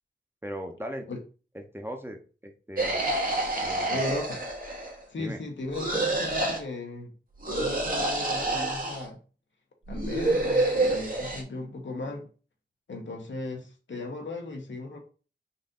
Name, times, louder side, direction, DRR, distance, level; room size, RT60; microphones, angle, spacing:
voice 1, 0.4-1.1 1.5-3.0 3.6-4.0 5.2-5.4, equal, 10° right, 4 dB, 0.8 m, -38 dB
sound 1, 2.8-5.0 5.7-6.6 7.4-9.1 9.9-11.4, right 2 dB, 50° right, 1.2 m, -28 dB
voice 2, 3.9-4.4 5.1-7.1 7.4-9.2 9.9-12.3 12.9-15.0, left 2 dB, 80° left, 2 dB, 1.0 m, -36 dB
4.0 x 2.6 x 3.8 m, 0.37 s
cardioid pair, 50°, 19 cm